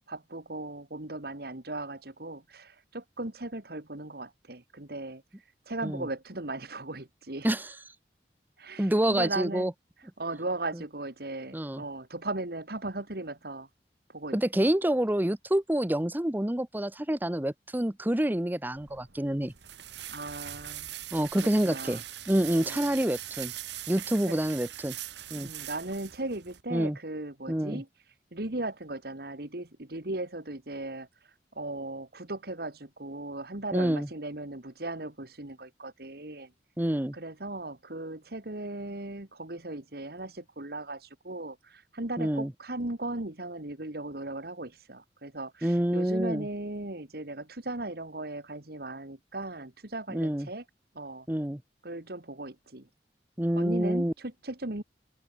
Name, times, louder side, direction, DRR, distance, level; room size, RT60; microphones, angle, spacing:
voice 1, 0.1-5.2 5.7-7.5 8.6-9.7 10.2-13.7 14.1-14.4 20.1-20.9 21.4-22.0 22.5-22.9 24.0-24.4 25.4-27.9 28.3-36.5 37.1-50.6 51.0-51.3 51.8-52.9 53.6-54.8, right 2 dB, 60° right, 2.3 m, -37 dB
voice 2, 8.8-9.7 11.5-11.8 14.3-19.5 21.1-23.5 23.9-24.9 25.3-25.5 26.7-27.0 27.5-27.8 33.7-34.1 36.8-37.1 42.2-42.5 45.6-46.5 50.1-50.5 51.3-51.6 53.4-54.1, right 1 dB, 10° right, 0.8 m, -27 dB
sound 1, 18.8-26.6, right 12 dB, 85° right, 1.8 m, -42 dB
open air
head